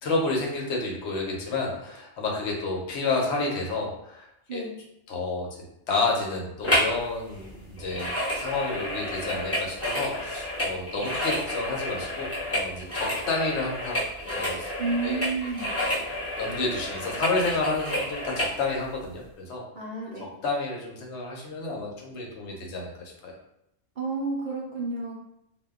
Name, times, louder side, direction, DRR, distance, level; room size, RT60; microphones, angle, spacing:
voice 1, 0.0-4.7 5.1-5.5 5.9-14.7 15.0-15.2 15.9-16.0 16.4-19.6 20.4-23.3, left 3 dB, 70° left, -1 dB, 0.9 m, -30 dB
sound 1, 6.6-7.0 7.3-18.6 19.1-19.2, equal, 15° left, 0.6 m, -30 dB
voice 2, 14.8-15.7 19.7-20.3 24.0-25.1, right 3 dB, 60° right, -4 dB, 0.5 m, -30 dB
2.2 x 2.1 x 3.5 m, 0.81 s
omnidirectional pair, 1.2 m